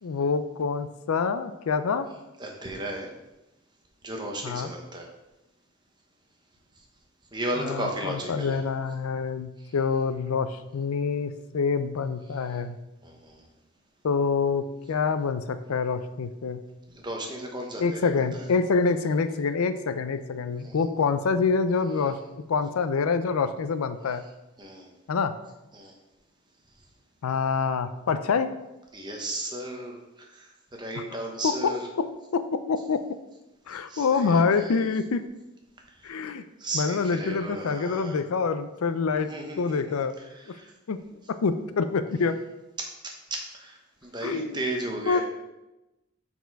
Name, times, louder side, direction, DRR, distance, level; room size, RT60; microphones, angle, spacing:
voice 1, 0.0-2.1 4.4-4.7 7.6-12.8 14.0-16.6 17.8-22.2 22.5-24.2 25.1-25.3 27.2-28.5 31.0-31.1 31.4-32.1 32.3-33.0 33.7-35.2 36.0-36.4 36.7-39.3 39.6-40.2 40.5-40.6 40.9-41.0 41.3-42.4 44.2-44.5 45.1-45.2, left 5 dB, 80° left, 11 dB, 0.4 m, -26 dB
voice 2, 2.4-3.1 4.0-5.1 7.3-8.6 13.0-13.4 16.9-18.5 20.6-20.8 24.6-24.9 25.7-25.9 28.9-30.0 30.3-31.9 33.7-34.9 36.0-36.2 36.6-38.2 39.2-40.7 42.8-42.9 43.3-45.2, right 1 dB, 20° right, 1 dB, 1.0 m, -35 dB
6.8 x 4.2 x 4.6 m, 0.98 s
head